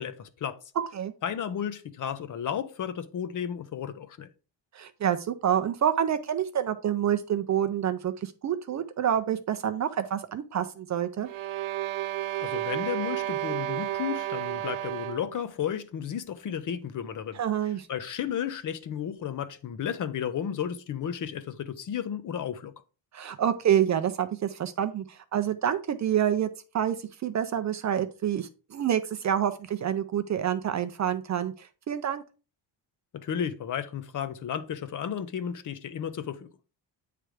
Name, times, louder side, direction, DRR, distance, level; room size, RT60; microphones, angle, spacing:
voice 1, 0.0-0.6 1.2-4.3 12.4-17.4 17.9-22.7 33.1-36.5, left 8 dB, 40° left, 0.6 m, -33 dB
voice 2, 0.8-1.1 4.7-11.3 17.3-17.9 23.1-26.5 26.7-27.0 27.2-32.2, right 9 dB, 40° right, 0.4 m, -27 dB
sound 1, 11.2-15.4, right 14 dB, 75° right, 0.9 m, -32 dB
8.9 x 3.3 x 4.8 m
cardioid pair, 180°, 47 cm